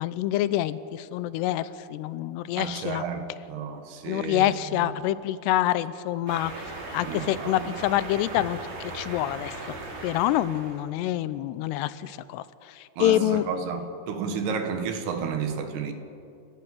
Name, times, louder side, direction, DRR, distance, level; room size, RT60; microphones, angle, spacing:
voice 1, 0.0-3.0 4.1-6.5 6.9-8.6 8.9-9.8 10.0-13.5, left 14 dB, 85° left, 15 dB, 2.8 m, -26 dB
voice 2, 2.6-4.5 4.8-4.9 7.1-7.7 13.0-15.9, right 6 dB, 75° right, 7 dB, 3.5 m, -32 dB
sound 1, 6.3-10.9, right 2 dB, 55° right, 4.4 m, -38 dB
29.5 x 14.5 x 7.8 m, 2.7 s
omnidirectional pair, 4.8 m